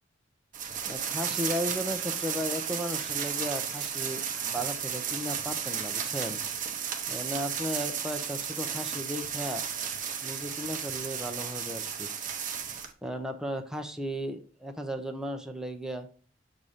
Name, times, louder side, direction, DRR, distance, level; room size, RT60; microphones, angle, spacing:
sound 1, 0.5-12.9, right 7 dB, 45° right, 0.8 m, -33 dB
voice 1, 0.8-6.4 7.1-9.7 10.2-12.1 13.0-16.1, equal, 5° right, 4 dB, 0.5 m, -35 dB
7.2 x 2.7 x 4.9 m, 0.41 s
head